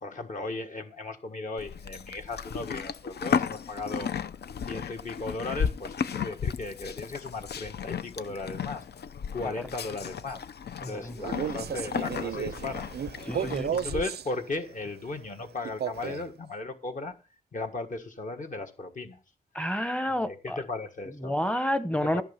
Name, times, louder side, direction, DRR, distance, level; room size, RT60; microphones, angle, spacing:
voice 1, 0.0-4.1 4.7-8.8 9.3-10.4 10.8-12.9 13.3-17.2 17.5-19.2 20.1-21.3 22.1-22.2, left 2 dB, 50° left, 1.6 m, -36 dB
Livestock farm animals working animals, 1.6-14.0, left 7 dB, 75° left, 0.7 m, -34 dB
voice 2, 10.8-11.4 13.3-13.7 19.5-20.6 21.2-22.2, equal, 5° left, 0.9 m, -29 dB
Male speech man speaking, 11.2-14.3 15.6-16.3, right 9 dB, 75° right, 0.5 m, -33 dB
14.5 x 6.3 x 5.8 m
wide cardioid pair, 155°, 17 cm